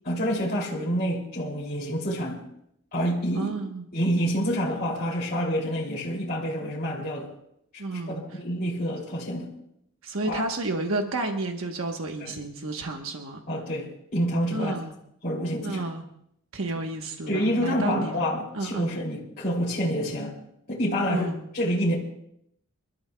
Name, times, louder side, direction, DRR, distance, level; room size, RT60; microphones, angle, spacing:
voice 1, 0.0-2.4 2.9-3.5 3.9-7.3 7.7-9.5 10.2-10.4 12.2-12.3 13.5-14.7 15.2-15.8 17.3-20.4 20.7-21.3 21.5-22.0, equal, 45° left, -7 dB, 2.8 m, -27 dB
voice 2, 3.4-3.9 7.8-8.2 10.0-13.4 14.5-14.9 15.6-16.0 16.5-18.2 18.5-18.9 21.1-21.4, right 2 dB, 90° right, 3 dB, 1.2 m, -31 dB
30.0 x 13.0 x 2.3 m, 0.74 s
head